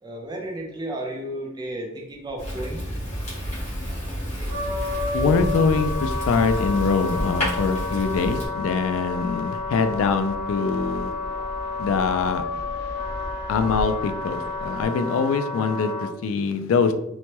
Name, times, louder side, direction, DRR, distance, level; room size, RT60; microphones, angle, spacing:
voice 1, 0.0-2.8, right 1 dB, 20° right, 1 dB, 0.5 m, -33 dB
Fire, 2.4-8.5, equal, 35° left, 1.2 m, -31 dB
Fixed-wing aircraft airplane, 3.8-14.8, equal, 50° left, 0.6 m, -37 dB
Wind instrument woodwind instrument, 4.5-16.1, left 3 dB, 55° right, 0.9 m, -31 dB
voice 2, 5.1-11.1 11.8-12.4 13.5-16.9, left 5 dB, 90° left, 10 dB, 0.3 m, -23 dB
3.0 x 2.1 x 2.8 m, 0.81 s
head